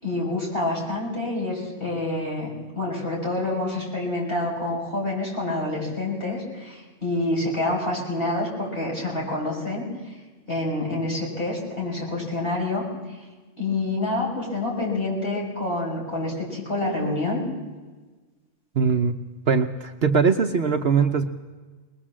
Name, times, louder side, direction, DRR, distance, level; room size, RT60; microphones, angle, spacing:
voice 1, 0.0-2.5 2.7-10.1 10.5-13.2 13.6-17.4, left 2 dB, 45° left, -3 dB, 6.5 m, -27 dB
voice 2, 18.7-19.2 19.5-21.3, right 5 dB, 55° right, 6 dB, 1.1 m, -21 dB
22.0 x 20.5 x 7.5 m, 1.3 s
omnidirectional pair, 1.4 m